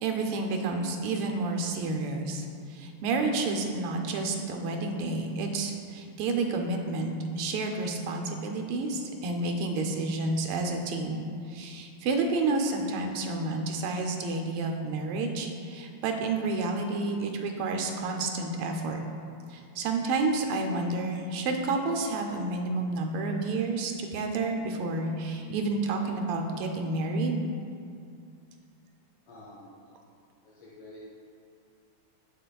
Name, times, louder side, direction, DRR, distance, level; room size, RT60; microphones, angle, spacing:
voice 1, 0.0-19.0 19.5-27.4, right 3 dB, 85° right, 3 dB, 1.5 m, -30 dB
voice 2, 29.3-29.7 30.4-31.1, left 1 dB, 85° left, -9 dB, 2.1 m, -48 dB
7.6 x 6.6 x 2.3 m, 2.3 s
omnidirectional pair, 2.4 m